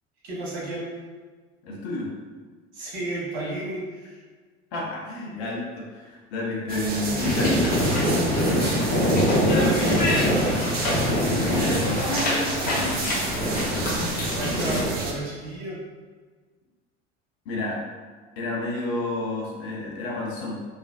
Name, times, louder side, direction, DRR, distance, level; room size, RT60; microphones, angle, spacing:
voice 1, 0.2-0.9 2.7-4.2 7.0-7.3 9.4-10.6 14.3-15.8, right 2 dB, 60° right, -5 dB, 1.1 m, -31 dB
voice 2, 1.6-2.1 4.7-8.1 11.2-13.3 17.4-17.8 18.4-20.6, left 2 dB, 60° left, -3 dB, 0.8 m, -30 dB
sound 1, 6.7-15.1, right 3 dB, 25° right, 0.5 m, -30 dB
sound 2, 7.2-14.8, left 1 dB, 25° left, 0.9 m, -24 dB
3.2 x 2.4 x 2.4 m, 1.5 s
figure-of-eight pair, 65°, 36 cm